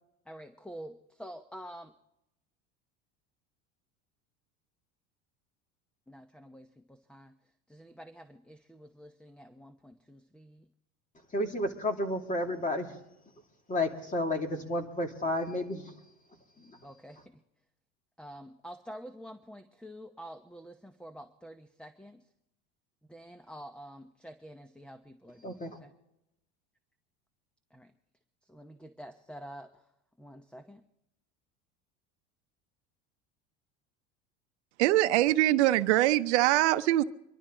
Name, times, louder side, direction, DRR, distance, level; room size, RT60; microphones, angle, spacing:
voice 1, 0.3-1.9 6.1-7.3 7.7-10.7 16.8-17.4 18.2-22.2 23.1-25.9 27.7-27.9 28.5-29.8 30.2-30.8, equal, 5° left, 0.9 m, -48 dB
voice 2, 11.3-13.0 13.7-16.0 16.6-16.9 25.4-25.8, left 1 dB, 20° left, 2.5 m, -32 dB
voice 3, 34.8-37.0, right 15 dB, 80° right, 0.8 m, -23 dB
25.5 x 12.0 x 3.8 m
supercardioid pair, 95°, 34 cm